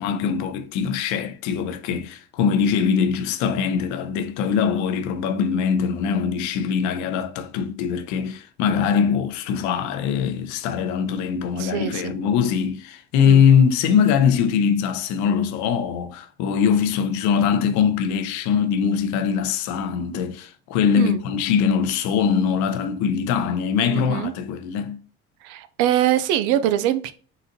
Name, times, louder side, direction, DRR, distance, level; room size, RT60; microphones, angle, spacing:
voice 1, 0.0-25.0, left 7 dB, 75° left, 0.6 m, -22 dB
voice 2, 11.6-12.1 13.2-13.4 20.9-21.2 23.8-24.3 25.4-27.1, right 12 dB, 85° right, 0.5 m, -23 dB
4.0 x 3.9 x 2.7 m
supercardioid pair, 80°, 29 cm